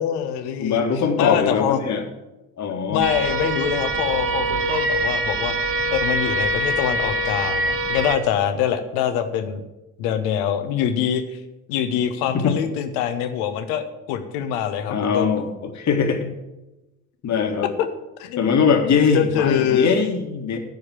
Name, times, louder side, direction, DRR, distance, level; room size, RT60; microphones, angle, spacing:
voice 1, 0.0-0.8 1.2-1.8 2.9-5.5 5.9-9.6 10.0-11.4 11.7-15.3 17.8-17.9 18.2-18.6 19.1-20.0, left 9 dB, 70° left, 9 dB, 1.2 m, -24 dB
voice 2, 0.6-2.0 2.6-3.1 12.3-12.6 14.9-16.3 17.2-17.7 18.4-20.6, left 6 dB, 45° left, 4 dB, 1.9 m, -21 dB
sound 1, 3.0-8.2, right 1 dB, 30° right, 1.4 m, -24 dB
14.0 x 4.8 x 7.5 m, 1.0 s
hypercardioid pair, 60°, 41 cm